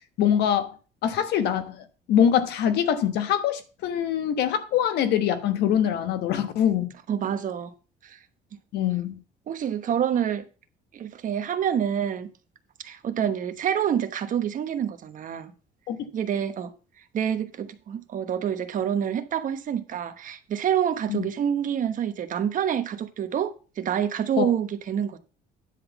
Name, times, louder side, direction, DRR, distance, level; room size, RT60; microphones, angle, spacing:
voice 1, 0.2-0.8 1.0-6.9 8.7-9.2 15.9-16.0 21.1-21.2 24.4-24.5, left 9 dB, 80° left, 1.3 m, -24 dB
voice 2, 7.1-7.7 8.0-8.2 9.5-10.4 10.9-12.3 12.8-15.5 16.1-16.7 17.1-25.2, right 9 dB, 50° right, 1.1 m, -27 dB
10.0 x 3.9 x 7.0 m
cardioid pair, 110°, 17 cm